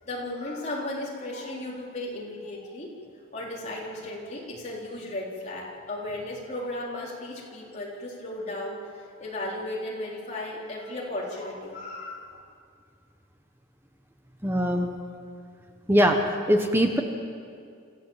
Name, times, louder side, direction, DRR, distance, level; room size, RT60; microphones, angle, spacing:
voice 1, 0.0-2.9 3.3-12.4, left 1 dB, 35° left, -4 dB, 4.1 m, -35 dB
voice 2, 14.4-14.9 15.9-16.2 16.5-17.0, equal, 10° right, 3 dB, 1.2 m, -21 dB
27.0 x 15.0 x 7.5 m, 2.3 s
head